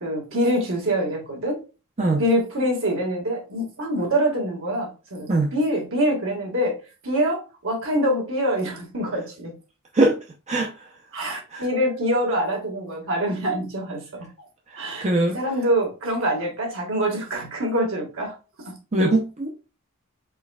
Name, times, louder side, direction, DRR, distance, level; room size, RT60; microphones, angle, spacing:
voice 1, 0.0-1.6 2.2-6.7 7.0-9.5 11.1-14.3 14.8-15.1 15.3-18.3 18.7-18.8, equal, 65° right, 1.8 m, -25 dB
voice 2, 15.0-15.4 18.9-19.5, right 2 dB, 30° right, 0.7 m, -21 dB
4.5 x 4.4 x 2.3 m
head